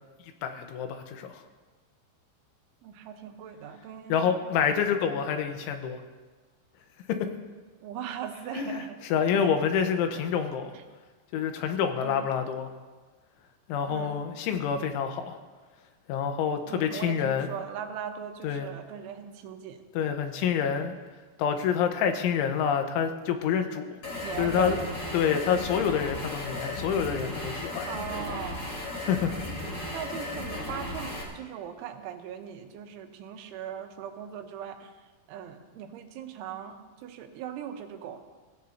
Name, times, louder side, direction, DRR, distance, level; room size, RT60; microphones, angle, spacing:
voice 1, 0.4-1.4 4.1-6.0 8.5-8.8 9.1-10.7 11.3-12.7 13.7-15.4 16.1-17.5 18.4-18.7 20.0-20.9 21.4-23.9 24.4-24.8 25.1-27.9 29.1-29.3 29.7-29.8, left 7 dB, 85° left, 6 dB, 3.5 m, -27 dB
voice 2, 2.8-4.4 4.7-4.8 7.8-9.0 9.3-9.6 10.7-10.8 12.0-12.3 13.9-14.3 16.7-19.8 20.6-20.9 24.2-25.0 27.9-28.7 29.1-29.4 29.9-38.2, right 8 dB, 85° right, 5 dB, 3.5 m, -39 dB
sound 1, 24.0-31.2, left 1 dB, 30° left, 2.8 m, -35 dB
24.0 x 16.5 x 2.8 m, 1.4 s
omnidirectional pair, 5.4 m